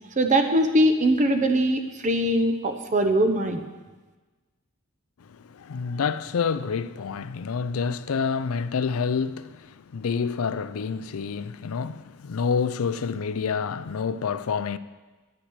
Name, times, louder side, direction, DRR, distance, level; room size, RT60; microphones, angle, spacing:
voice 1, 0.2-3.6, right 1 dB, 35° right, 0.8 m, -21 dB
voice 2, 5.3-14.8, left 5 dB, 75° left, 0.4 m, -28 dB
10.5 x 6.0 x 8.1 m
head